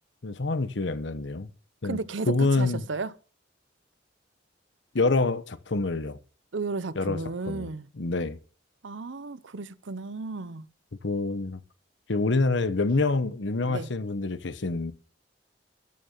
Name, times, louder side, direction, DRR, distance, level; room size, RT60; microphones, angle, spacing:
voice 1, 0.2-1.5 1.8-2.8 4.9-6.2 7.0-7.2 7.5-7.7 8.0-8.4 11.0-11.6 12.1-14.9, left 3 dB, 65° left, 0.9 m, -26 dB
voice 2, 1.8-3.1 6.5-7.9 8.8-10.7 13.6-13.9, right 3 dB, 75° right, 0.7 m, -34 dB
13.5 x 6.7 x 7.2 m
head